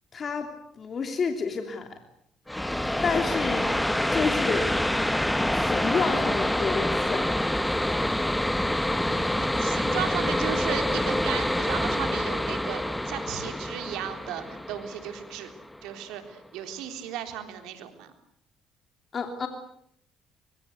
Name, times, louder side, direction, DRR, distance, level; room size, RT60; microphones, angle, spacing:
voice 1, 0.1-2.0 3.0-3.8 4.1-4.7 5.5-7.3 19.1-19.5, left 5 dB, 45° left, 5 dB, 3.1 m, -29 dB
sound 1, 2.5-15.9, left 1 dB, 5° left, 1.7 m, -27 dB
voice 2, 9.1-15.5 15.8-18.1, right 10 dB, 80° right, 7 dB, 3.5 m, -35 dB
24.0 x 23.5 x 8.1 m, 0.71 s
supercardioid pair, 60°, 0 cm